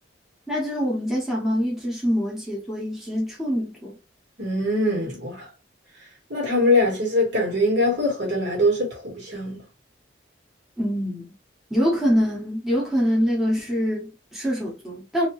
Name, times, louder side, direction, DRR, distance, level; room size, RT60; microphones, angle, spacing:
voice 1, 0.5-3.9 10.8-11.3 11.7-15.3, equal, ahead, 1.0 m, -24 dB
voice 2, 4.4-5.4 6.3-9.6, left 1 dB, 60° right, 1.6 m, -22 dB
2.9 x 2.7 x 3.0 m
head